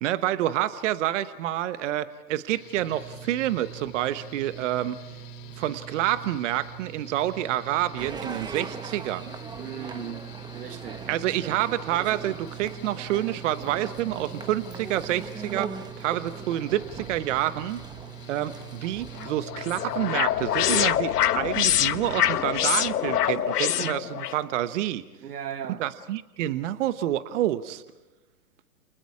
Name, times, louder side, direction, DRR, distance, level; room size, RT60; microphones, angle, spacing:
voice 1, 0.0-5.0 5.6-9.3 11.1-17.8 18.3-25.0 25.8-27.8, right 13 dB, 50° right, 1.1 m, -28 dB
Mechanical fan, 2.5-21.0, right 5 dB, 50° left, 4.0 m, -43 dB
sound 1, 8.0-19.3, right 4 dB, 10° right, 1.0 m, -41 dB
voice 2, 9.6-11.6 23.8-24.0 25.2-25.9, right 8 dB, 75° right, 1.8 m, -38 dB
sound 2, 19.2-24.4, left 10 dB, 70° left, 1.1 m, -25 dB
29.5 x 29.0 x 4.9 m
hypercardioid pair, 120°, 48 cm